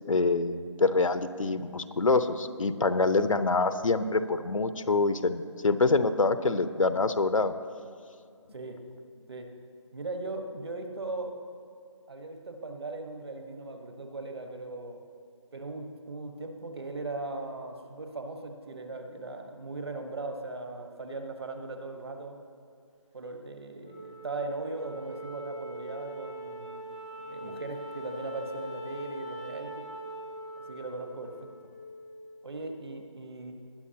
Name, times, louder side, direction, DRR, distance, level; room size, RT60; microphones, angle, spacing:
voice 1, 0.1-7.5 27.4-27.6, left 3 dB, 85° left, 11 dB, 0.8 m, -26 dB
voice 2, 9.9-11.4 12.1-15.0 15.5-22.4 23.1-26.9 27.2-29.9 30.7-31.5 32.4-33.5, right 2 dB, 50° right, 5 dB, 1.4 m, -38 dB
Wind instrument woodwind instrument, 23.8-32.4, right 1 dB, ahead, 0.5 m, -41 dB
20.5 x 9.5 x 2.9 m, 2.5 s
figure-of-eight pair, 170°, 16 cm